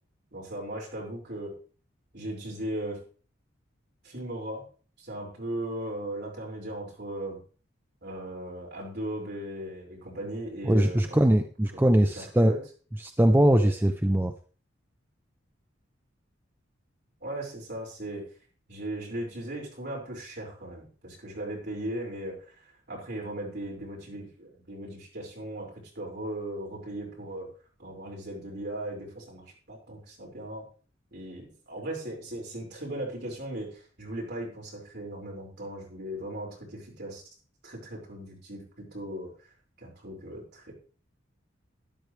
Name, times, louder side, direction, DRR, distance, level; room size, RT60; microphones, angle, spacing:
voice 1, 0.3-1.5 2.1-3.0 4.0-4.6 5.0-7.4 8.0-11.4 12.0-12.1 12.4-12.6 13.2-13.7 17.2-18.2 18.7-22.6 22.9-27.5 27.8-30.6 31.1-37.2 37.6-39.3 39.8-40.7, right 1 dB, 55° right, -4 dB, 5.5 m, -37 dB
voice 2, 10.6-12.6 13.0-14.3, right 1 dB, 10° right, 6 dB, 0.5 m, -21 dB
12.5 x 11.0 x 3.3 m, 0.39 s
head